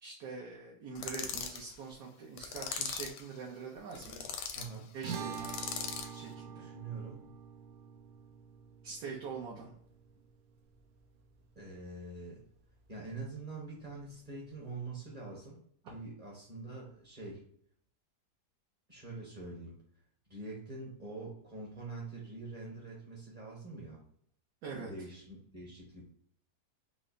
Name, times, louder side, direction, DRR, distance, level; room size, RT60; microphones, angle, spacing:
voice 1, 0.0-4.3 4.9-5.8 6.1-6.7 8.8-9.7 24.6-24.9, right 5 dB, 70° right, -2 dB, 1.1 m, -44 dB
sound 1, 1.0-1.6 2.4-3.2 3.9-4.7 5.3-6.2, left 7 dB, 85° left, 1.2 m, -39 dB
voice 2, 4.5-4.8 6.6-7.3 11.5-12.4 12.9-15.6 15.9-17.4 18.9-19.8 20.3-24.0 24.7-26.0, right 3 dB, 30° right, -3 dB, 0.7 m, -45 dB
sound 2, 5.0-11.5, right 7 dB, 85° right, 1.2 m, -46 dB
5.1 x 2.0 x 2.5 m, 0.65 s
omnidirectional pair, 1.8 m